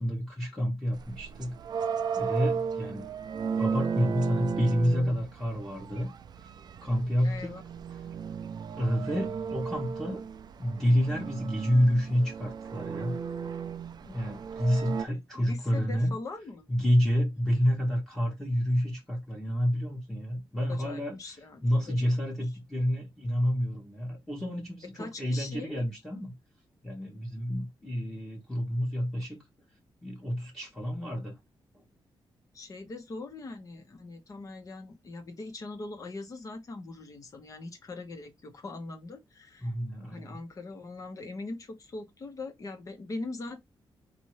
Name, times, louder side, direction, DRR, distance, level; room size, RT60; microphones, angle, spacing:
voice 1, 0.0-1.5 2.1-3.1 3.6-6.1 6.8-7.6 8.8-10.2 10.6-13.1 14.0-16.1 16.7-21.2 21.6-26.3 26.8-29.4 30.0-31.4 39.6-40.4, equal, 5° left, 1.2 m, -29 dB
sound 1, 0.9-15.0, right 6 dB, 50° right, 0.4 m, -35 dB
voice 2, 7.2-7.6 15.3-16.7 20.7-22.2 24.9-25.8 32.5-39.7 40.1-43.6, left 3 dB, 40° left, 1.1 m, -41 dB
4.3 x 2.7 x 4.7 m
wide cardioid pair, 175°, 9 cm